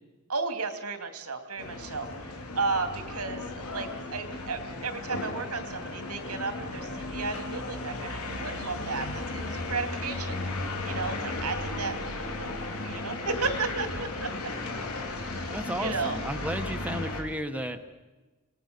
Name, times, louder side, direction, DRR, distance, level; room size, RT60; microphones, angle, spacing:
voice 1, 0.3-2.1 2.5-12.6 12.8-14.5 15.3-16.2, right 4 dB, 90° right, 8 dB, 2.6 m, -34 dB
sound 1, 1.6-17.2, left 2 dB, 90° left, 4.1 m, -35 dB
voice 2, 15.5-17.8, equal, 5° right, 6 dB, 1.2 m, -33 dB
26.5 x 19.0 x 6.8 m, 1.2 s
head